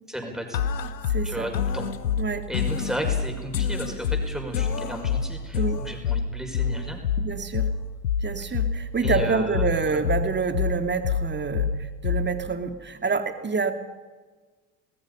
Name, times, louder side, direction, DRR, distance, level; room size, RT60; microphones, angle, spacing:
voice 1, 0.1-0.6 1.2-1.9 2.5-7.0 9.0-10.0, equal, ahead, 2 dB, 5.7 m, -34 dB
sound 1, 0.5-12.5, left 6 dB, 85° left, 0.9 m, -28 dB
voice 2, 1.1-1.5 2.2-2.5 5.5-5.8 7.2-7.7 8.2-13.7, right 5 dB, 20° right, 7 dB, 2.3 m, -27 dB
28.5 x 20.0 x 5.6 m, 1.3 s
figure-of-eight pair, 65°, 50 cm